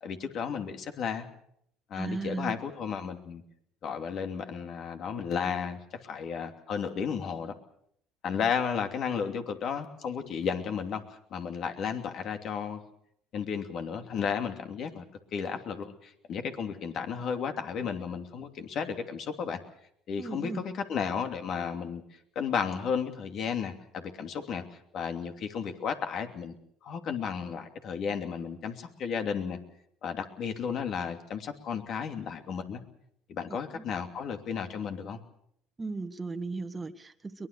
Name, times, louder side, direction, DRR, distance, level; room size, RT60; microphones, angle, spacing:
voice 1, 0.0-1.3 1.9-3.4 3.8-7.5 8.2-12.8 13.3-15.0 15.3-19.6 20.1-22.0 22.3-24.6 24.9-26.5 26.8-29.6 30.0-32.8 33.3-35.2, left 6 dB, 55° left, 6 dB, 2.8 m, -33 dB
voice 2, 1.9-2.5 20.2-20.6 33.7-33.8 35.8-37.5, right 3 dB, 20° right, 6 dB, 1.4 m, -36 dB
23.0 x 20.5 x 6.8 m, 0.70 s
supercardioid pair, 85°, 0 cm